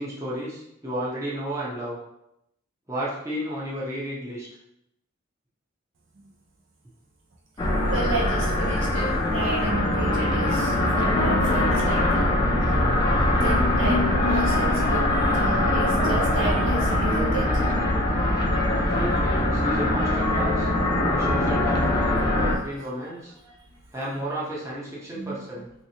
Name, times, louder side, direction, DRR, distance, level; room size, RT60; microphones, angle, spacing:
voice 1, 0.0-2.0 2.9-4.5 18.7-20.7 21.0-23.3 23.9-25.7, right 1 dB, 15° right, -6 dB, 0.7 m, -32 dB
sound 1, 7.6-22.5, left 1 dB, 20° left, 0.5 m, -22 dB
voice 2, 7.9-12.4 13.4-17.4 25.1-25.4, right 2 dB, 60° right, -2 dB, 0.6 m, -32 dB
3.2 x 3.0 x 2.8 m, 0.81 s
head